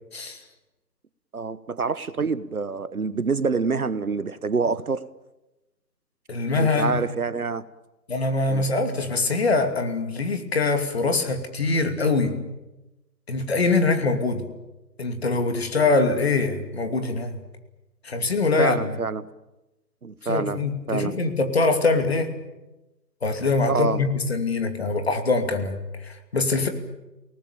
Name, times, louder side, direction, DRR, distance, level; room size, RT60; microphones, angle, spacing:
voice 1, 1.3-5.0 6.5-7.6 8.5-8.7 18.6-19.3 20.0-21.2 23.7-24.0, right 4 dB, 60° right, 1.1 m, -26 dB
voice 2, 6.3-6.9 8.1-12.4 13.3-14.5 15.0-17.3 18.0-18.8 20.2-22.3 23.2-26.7, left 3 dB, 40° left, 2.7 m, -23 dB
29.0 x 19.0 x 8.9 m
figure-of-eight pair, 165°, 50 cm